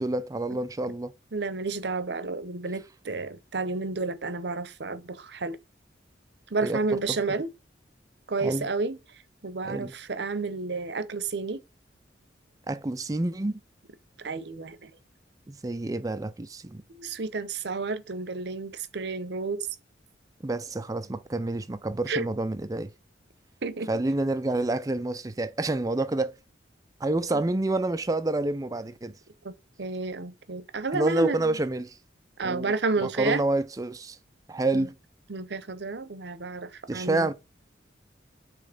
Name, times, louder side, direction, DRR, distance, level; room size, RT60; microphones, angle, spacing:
voice 1, 0.0-1.1 6.6-6.8 7.1-7.2 8.4-8.7 9.6-9.9 12.7-13.6 15.5-16.8 20.4-22.9 23.9-26.3 27.0-29.2 30.9-32.0 32.4-32.7 33.0-34.2 34.5-34.9 36.9-37.3, right 2 dB, 20° right, 0.4 m, -28 dB
voice 2, 1.3-5.6 6.5-7.5 8.3-9.0 9.4-11.6 14.2-14.9 16.9-19.7 22.1-22.3 23.6-23.9 27.3-27.4 29.4-29.5 29.8-31.6 32.4-33.4 34.7-34.9 35.3-37.3, right 3 dB, 60° right, 0.8 m, -31 dB
6.8 x 3.2 x 5.0 m
head